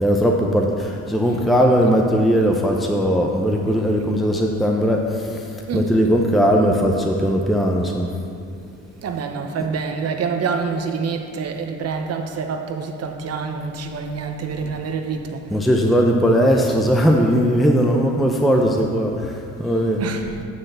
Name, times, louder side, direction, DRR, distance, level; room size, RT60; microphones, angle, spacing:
voice 1, 0.0-5.0 5.7-8.1 15.5-19.1 19.6-20.0, equal, ahead, 0 dB, 0.6 m, -18 dB
voice 2, 9.0-15.4 20.0-20.2, right 5 dB, 55° right, 5 dB, 0.9 m, -26 dB
9.2 x 3.8 x 6.6 m, 2.5 s
cardioid pair, 90°, 30 cm